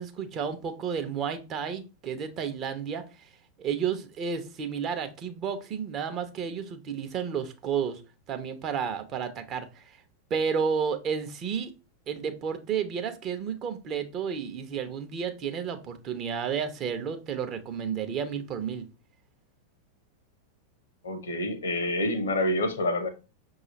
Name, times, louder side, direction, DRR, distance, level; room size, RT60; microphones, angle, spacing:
voice 1, 0.0-3.1 3.6-8.0 8.3-10.0 10.3-11.7 12.1-18.8, right 7 dB, 35° right, 0.6 m, -31 dB
voice 2, 21.0-23.1, left 1 dB, 70° left, 0.7 m, -27 dB
6.1 x 2.4 x 2.9 m
figure-of-eight pair, 90°, 0 cm